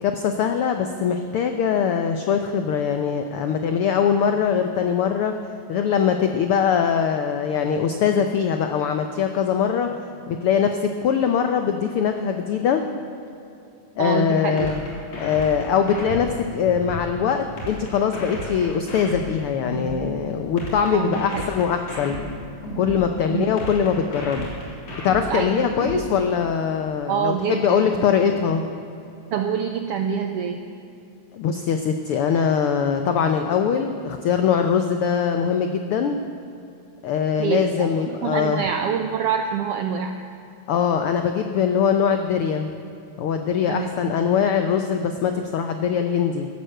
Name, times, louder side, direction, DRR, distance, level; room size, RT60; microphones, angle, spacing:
voice 1, 0.0-5.3 5.7-9.9 10.3-12.8 14.0-14.8 15.2-22.1 22.8-24.5 25.0-28.6 31.3-36.2 37.0-38.6 40.7-42.7 43.2-46.5, left 7 dB, 85° left, 6 dB, 1.2 m, -22 dB
voice 2, 14.0-14.7 20.9-21.4 23.3-23.5 25.3-26.0 27.1-28.2 29.3-30.6 37.4-37.9 38.2-40.2 43.7-44.2, right 7 dB, 80° right, 5 dB, 1.3 m, -26 dB
sound 1, 14.6-17.1 17.6-20.1 20.6-23.1 23.6-26.1, equal, 55° left, 4.5 m, -33 dB
14.5 x 11.0 x 7.7 m, 2.7 s
omnidirectional pair, 3.5 m